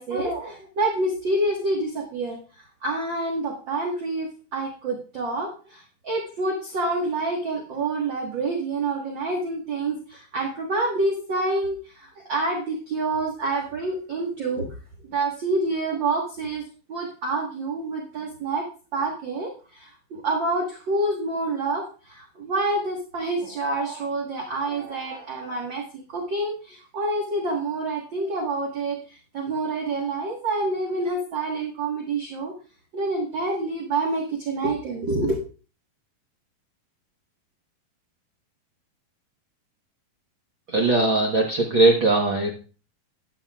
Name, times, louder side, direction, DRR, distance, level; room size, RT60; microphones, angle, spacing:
voice 1, 0.0-14.7 15.1-16.6 16.9-18.7 18.9-32.5 32.9-35.4, right 2 dB, 50° right, 0 dB, 1.5 m, -27 dB
voice 2, 40.7-42.5, right 2 dB, 70° right, 0 dB, 1.1 m, -20 dB
13.0 x 9.8 x 2.4 m, 0.36 s
omnidirectional pair, 4.1 m